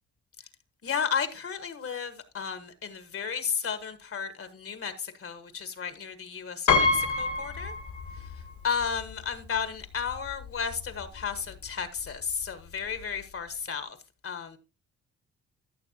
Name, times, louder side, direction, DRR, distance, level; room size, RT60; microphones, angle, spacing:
voice 1, 0.8-7.7 8.6-14.0 14.2-14.6, left 6 dB, 45° left, 1.4 m, -33 dB
Piano, 6.7-8.5 8.8-8.9 10.1-10.2 10.5-10.7, left 4 dB, 75° left, 1.9 m, -26 dB
13.5 x 6.6 x 2.9 m
cardioid pair, 90°, 30 cm